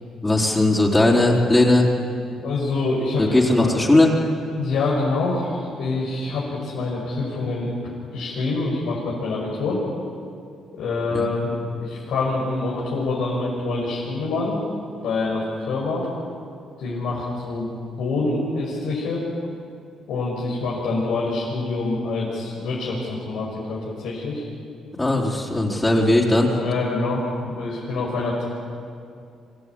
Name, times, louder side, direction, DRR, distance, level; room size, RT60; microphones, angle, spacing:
voice 1, 0.2-1.9 3.2-4.1 11.1-11.2 25.0-26.5, left 2 dB, 20° left, -2 dB, 4.3 m, -18 dB
voice 2, 2.4-3.8 4.5-9.8 10.7-14.6 15.0-16.1 16.8-17.7 18.0-19.3 20.1-24.4 26.6-28.5, left 3 dB, 85° left, -6 dB, 6.3 m, -26 dB
26.5 x 16.0 x 9.9 m, 2.4 s
cardioid pair, 90°, 0 cm